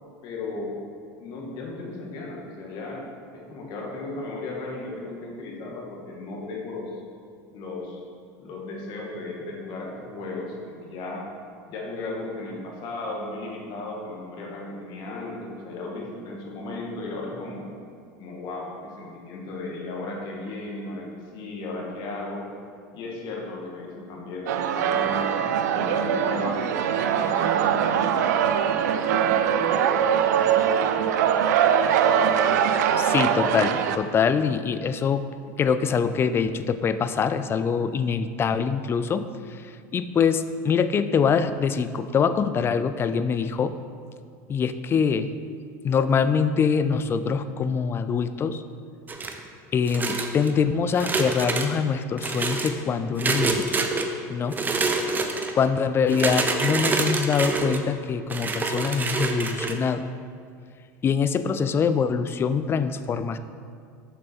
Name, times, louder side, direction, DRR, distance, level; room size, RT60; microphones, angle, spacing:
voice 1, 0.2-0.8 1.2-3.1 3.3-7.0 7.5-8.0 8.4-11.3 11.7-17.7 18.2-22.4 22.9-26.6 27.1-30.1, left 2 dB, 55° left, -1 dB, 1.6 m, -35 dB
sound 1, 24.5-34.0, right 8 dB, 85° right, 0.4 m, -22 dB
voice 2, 33.0-35.2 35.6-39.6 39.9-43.7 44.5-45.3 45.8-48.6 49.7-53.8 54.3-54.6 55.6-60.1 61.0-63.4, left 6 dB, 25° left, 12 dB, 0.3 m, -24 dB
sound 2, 49.1-49.5 49.9-50.5 50.9-51.7 52.2-52.7 53.2-54.1 54.5-55.5 56.1-57.8 58.3-59.7, right 3 dB, 20° right, 0.6 m, -26 dB
7.0 x 5.2 x 4.4 m, 2.2 s
supercardioid pair, 110°, 9 cm